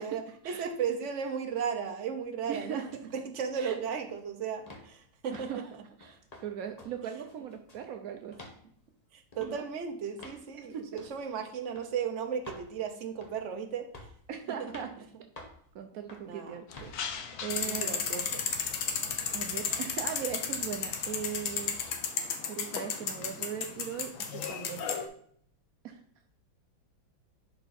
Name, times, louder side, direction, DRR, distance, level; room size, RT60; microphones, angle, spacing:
voice 1, 0.0-2.8 3.2-5.6 9.1-13.9 14.5-14.7 16.2-16.6 17.6-18.4, right 7 dB, 50° right, 5 dB, 0.9 m, -35 dB
voice 2, 2.5-2.9 3.5-3.8 5.3-5.6 6.0-8.4 9.4-9.6 10.5-10.9 14.3-14.9 15.7-16.9 17.4-18.3 19.3-21.8 22.4-24.9 25.8-26.0, right 8 dB, 75° right, 5 dB, 0.8 m, -39 dB
sound 1, 4.7-4.9 5.3-5.6 6.0-6.5 6.8-6.9 7.3-7.9 8.3-8.6 9.3-9.5 10.2-10.4 11.0-11.2 11.8-11.9 12.5-12.7 13.2-13.5 13.9-14.2 14.7-14.9 15.4-15.6 16.1-16.3 16.7-17.0, left 2 dB, 25° left, 1.0 m, -48 dB
sound 2, 16.7-22.0, left 6 dB, 60° left, 1.1 m, -44 dB
sound 3, 17.5-25.1, left 6 dB, 75° left, 1.7 m, -34 dB
11.0 x 4.5 x 4.2 m, 0.62 s
omnidirectional pair, 2.3 m